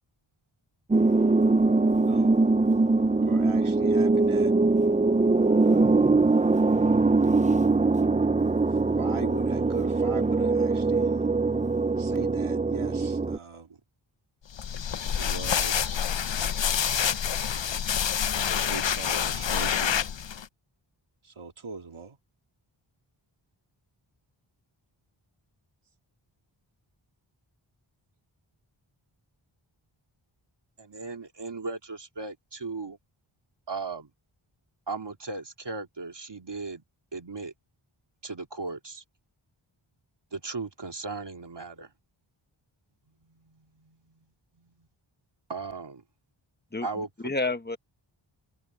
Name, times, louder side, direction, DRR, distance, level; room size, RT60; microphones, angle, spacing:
sound 1, 0.9-13.4, right 3 dB, 15° right, 0.4 m, -22 dB
voice 1, 1.9-2.5 3.3-4.5 9.0-11.3 12.0-13.8 15.2-16.1 18.7-20.0 21.2-22.2, right 5 dB, 75° right, 2.1 m, -40 dB
sound 2, 14.5-20.4, left 8 dB, 60° left, 0.7 m, -27 dB
voice 2, 30.8-33.0 33.7-34.1 34.9-36.8 37.1-37.5 38.2-39.0 40.3-41.9 43.2-44.2 44.6-44.9 45.5-46.0 46.8-47.1, right 3 dB, 55° right, 2.6 m, -37 dB
voice 3, 46.7-47.8, left 3 dB, 20° left, 1.4 m, -30 dB
wide cardioid pair, 75°, 49 cm